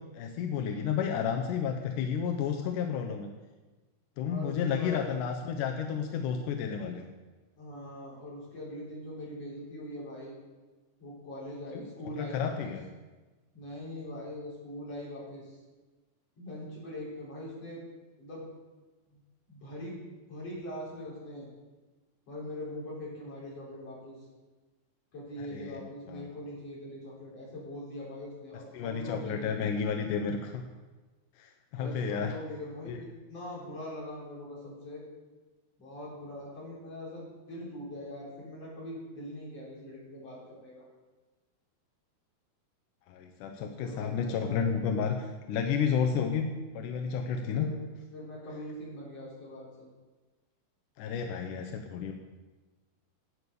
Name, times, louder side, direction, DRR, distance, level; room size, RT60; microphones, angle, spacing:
voice 1, 0.1-3.3 4.2-7.1 11.7-11.8 12.2-12.8 25.4-25.8 26.1-26.3 28.7-30.7 31.4-32.3 32.9-33.0 43.1-47.7 51.0-52.1, left 6 dB, 75° left, 4 dB, 1.9 m, -31 dB
voice 2, 4.3-5.1 7.6-10.4 11.0-12.7 13.5-15.6 16.4-17.8 18.2-18.5 19.1-19.2 19.5-20.0 20.3-21.5 22.3-24.2 25.1-29.7 31.7-35.0 35.8-40.8 43.6-44.6 47.5-47.8 48.1-49.9, left 1 dB, 40° left, -6 dB, 5.0 m, -42 dB
11.0 x 8.4 x 6.8 m, 1.2 s
omnidirectional pair, 4.4 m